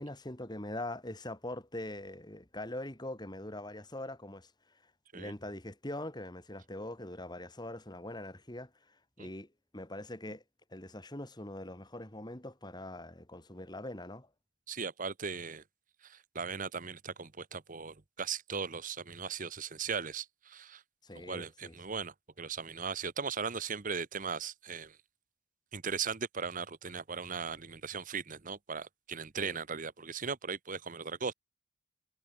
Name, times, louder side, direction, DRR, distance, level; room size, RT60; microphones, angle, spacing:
voice 1, 0.0-4.5 5.1-9.5 9.7-10.4 10.7-14.3 21.0-21.7 29.4-29.6, left 1 dB, 20° left, 2.3 m, -42 dB
voice 2, 14.7-15.6 16.0-20.8 21.1-25.0 25.7-31.3, right 5 dB, 35° right, 1.0 m, -38 dB
head